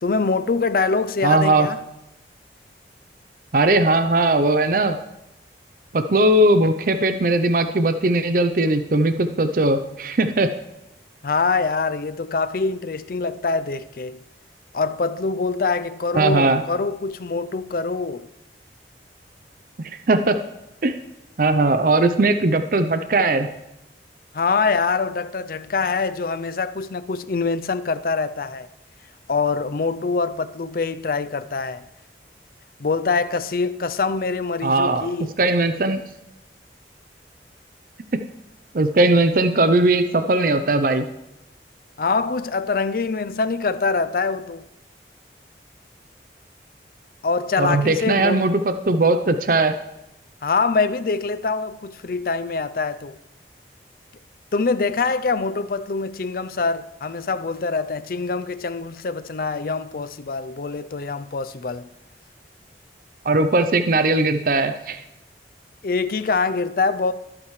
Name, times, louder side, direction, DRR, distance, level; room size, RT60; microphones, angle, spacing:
voice 1, 0.0-1.8 11.2-14.2 14.7-18.3 24.3-28.7 29.3-31.9 32.8-35.3 42.0-44.7 47.2-48.6 50.4-53.2 54.5-61.9 65.8-67.1, left 4 dB, 55° left, 0.5 m, -24 dB
voice 2, 1.2-1.7 3.5-5.0 5.9-10.5 16.1-16.6 19.8-20.4 20.8-21.0 21.4-23.5 34.6-35.1 35.4-36.0 38.7-41.1 47.6-49.8 63.2-65.0, right 2 dB, 50° right, 0.6 m, -19 dB
21.5 x 8.7 x 3.2 m
head